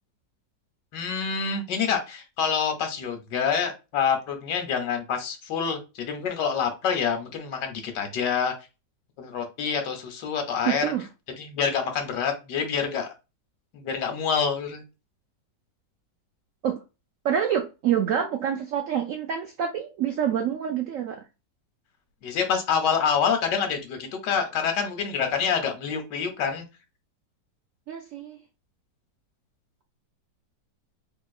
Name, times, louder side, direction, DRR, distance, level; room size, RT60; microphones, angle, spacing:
voice 1, 0.9-8.5 9.2-10.8 11.4-13.1 13.7-14.8 22.2-26.6, left 6 dB, 70° left, 1.5 m, -27 dB
voice 2, 10.6-11.1 16.6-16.8 17.2-21.2 27.9-28.4, right 9 dB, 85° right, 0.7 m, -27 dB
3.6 x 3.0 x 2.4 m
omnidirectional pair, 2.0 m